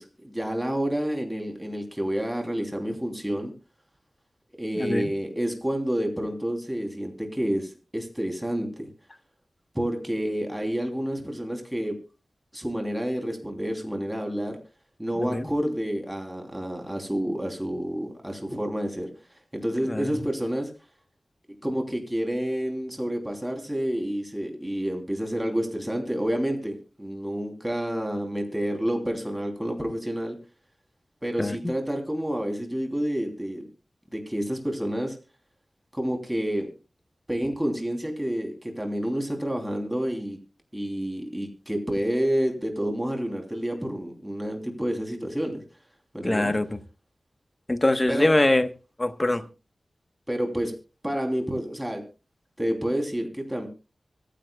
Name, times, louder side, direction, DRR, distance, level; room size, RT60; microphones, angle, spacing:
voice 1, 0.0-3.5 4.6-8.9 9.7-12.0 12.5-14.6 15.0-19.1 19.5-20.7 21.6-30.4 31.2-33.7 34.1-35.2 35.9-36.7 37.3-40.4 40.7-45.6 46.1-46.6 48.1-48.3 50.3-50.7 51.0-52.0 52.6-53.7, equal, 10° right, 3.0 m, -29 dB
voice 2, 4.7-5.1 15.2-15.5 19.8-20.1 31.4-31.6 46.2-46.7 47.7-48.7 49.0-49.4, left 1 dB, 25° left, 1.1 m, -23 dB
24.5 x 10.0 x 2.3 m
wide cardioid pair, 90°, 0 cm